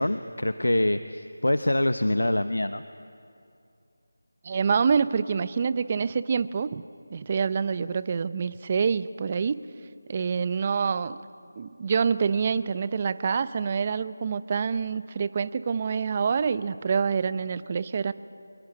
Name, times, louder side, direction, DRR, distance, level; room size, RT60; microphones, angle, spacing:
voice 1, 0.0-2.8, left 1 dB, 85° left, 10 dB, 1.0 m, -25 dB
voice 2, 4.4-6.8 7.1-9.6 10.1-11.2 11.6-18.1, right 6 dB, 30° right, 15 dB, 0.8 m, -26 dB
25.5 x 22.0 x 9.7 m, 2.6 s
figure-of-eight pair, 165°, 0 cm